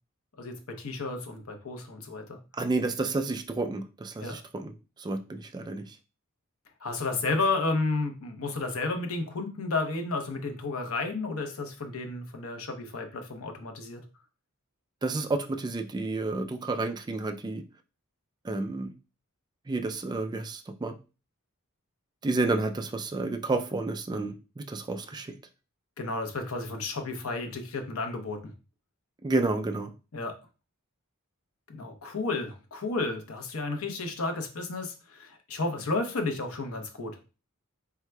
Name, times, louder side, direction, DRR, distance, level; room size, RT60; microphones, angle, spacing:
voice 1, 0.4-2.4 4.2-4.4 6.8-14.0 26.0-28.5 30.1-30.3 31.7-37.2, left 3 dB, 70° left, 4 dB, 0.8 m, -32 dB
voice 2, 2.5-6.0 15.0-17.6 18.4-18.9 19.7-20.9 22.2-25.3 29.2-29.9, right 2 dB, 20° right, 6 dB, 0.3 m, -30 dB
4.7 x 3.5 x 2.2 m, 0.32 s
head